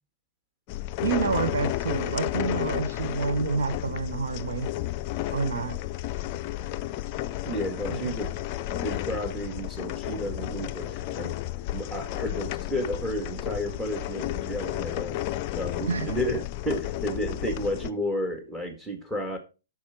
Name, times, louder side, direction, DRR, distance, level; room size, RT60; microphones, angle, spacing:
sound 1, 0.7-17.9, left 14 dB, 35° left, 0.4 m, -32 dB
voice 1, 1.0-4.7 5.3-5.8 7.9-8.0 15.9-16.2, right 5 dB, 60° right, 0.8 m, -28 dB
voice 2, 7.5-8.3 8.7-11.3 11.7-15.2 15.5-19.4, equal, 10° right, 1.8 m, -32 dB
8.5 x 6.1 x 4.4 m
figure-of-eight pair, 115°, 0 cm